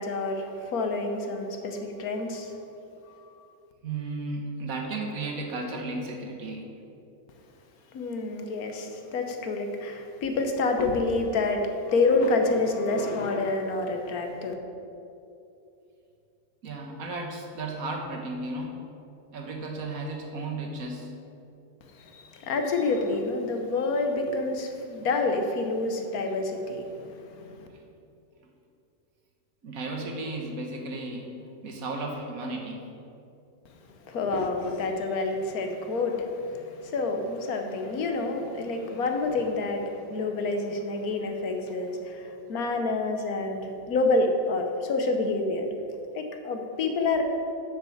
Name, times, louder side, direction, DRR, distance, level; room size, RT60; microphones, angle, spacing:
voice 1, 0.0-2.6 3.1-3.2 7.9-14.5 21.9-27.7 34.1-45.7 46.1-47.2, left 3 dB, 60° left, 4 dB, 1.3 m, -28 dB
voice 2, 3.8-6.6 16.6-18.8 19.3-21.1 29.6-31.3 31.6-32.8, right 2 dB, 55° right, 1 dB, 1.5 m, -34 dB
7.3 x 6.4 x 7.2 m, 2.7 s
omnidirectional pair, 1.9 m